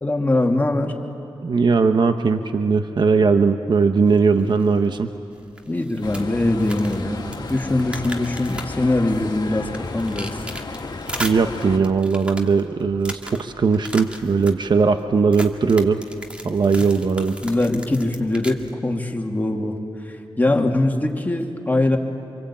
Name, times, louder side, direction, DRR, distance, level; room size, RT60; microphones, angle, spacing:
voice 1, 0.0-1.0 5.7-10.4 17.4-19.8 20.1-22.0, left 2 dB, 20° left, 1 dB, 2.5 m, -22 dB
voice 2, 1.4-5.1 11.2-16.0 16.4-17.4, right 5 dB, 60° right, 8 dB, 1.0 m, -19 dB
sound 1, 4.0-18.7, equal, 15° right, 2.2 m, -38 dB
sound 2, 6.0-11.8, left 3 dB, 50° left, 2.0 m, -33 dB
27.0 x 23.5 x 8.7 m, 2.7 s
cardioid pair, 75°, 9 cm